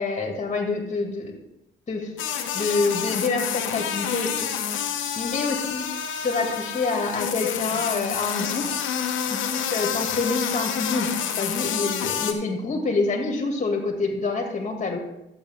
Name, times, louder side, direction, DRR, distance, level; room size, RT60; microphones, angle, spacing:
voice 1, 0.0-1.3 1.9-2.1 2.5-4.9 5.2-5.9 6.2-8.8 9.3-15.0, left 3 dB, 35° left, 3 dB, 2.3 m, -27 dB
sound 1, 2.2-12.3, left 8 dB, 80° left, 1.2 m, -28 dB
12.0 x 8.3 x 3.6 m, 0.87 s
cardioid pair, 90°, 20 cm